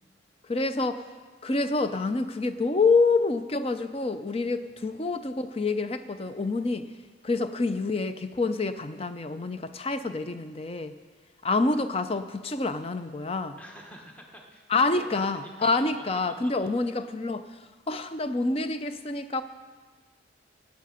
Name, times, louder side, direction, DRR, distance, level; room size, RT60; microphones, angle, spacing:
voice 1, 0.5-1.0 1.4-6.9 7.2-10.9 11.4-13.6 14.7-19.4, left 3 dB, 30° left, 10 dB, 0.5 m, -27 dB
voice 2, 13.6-17.0, equal, 5° left, 0 dB, 1.2 m, -48 dB
16.5 x 9.4 x 5.0 m, 1.4 s
head